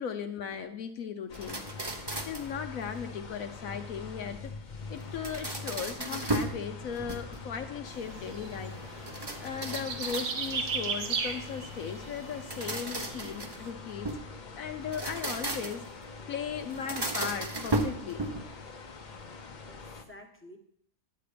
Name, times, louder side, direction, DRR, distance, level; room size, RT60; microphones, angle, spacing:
voice 1, 0.0-1.6 2.2-4.5 4.9-8.9 9.4-14.1 14.6-15.8 16.3-18.2, left 7 dB, 65° left, 7 dB, 1.0 m, -37 dB
sound 1, 1.3-20.0, left 4 dB, 40° left, 0.7 m, -44 dB
sound 2, 1.3-2.6 5.0-6.6 7.0-7.6 9.0-10.7 12.3-14.3 14.8-15.9 16.7-18.6, right 2 dB, 25° right, 0.5 m, -35 dB
sound 3, 7.9-13.7, right 5 dB, 75° right, 1.6 m, -37 dB
voice 2, 19.7-20.6, left 1 dB, 10° left, 3 dB, 1.0 m, -53 dB
11.0 x 8.3 x 5.0 m, 0.66 s
omnidirectional pair, 1.8 m